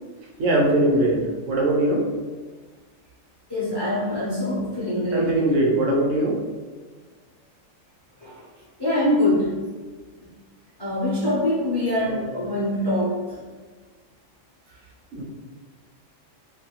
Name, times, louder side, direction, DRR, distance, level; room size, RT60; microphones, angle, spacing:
voice 1, 0.4-2.1 5.1-6.4 12.0-12.3 15.1-15.2, right 1 dB, 75° right, -1 dB, 0.9 m, -21 dB
voice 2, 3.5-5.3 8.2-8.4 8.8-9.6 10.8-13.4, left 1 dB, 40° left, -8 dB, 0.3 m, -24 dB
2.5 x 2.3 x 2.9 m, 1.4 s
omnidirectional pair, 1.3 m